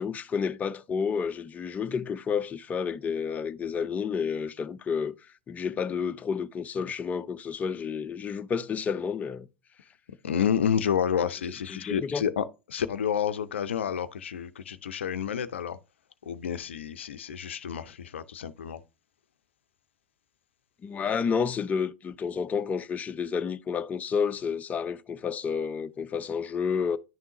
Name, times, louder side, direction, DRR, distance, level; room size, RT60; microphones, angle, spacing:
voice 1, 0.0-5.1 5.5-9.5 11.7-12.2 20.8-27.0, left 6 dB, 25° left, 0.5 m, -30 dB
voice 2, 10.2-15.8 16.3-18.8, left 8 dB, 80° left, 0.5 m, -29 dB
11.0 x 3.6 x 2.8 m
hypercardioid pair, 90°, 6 cm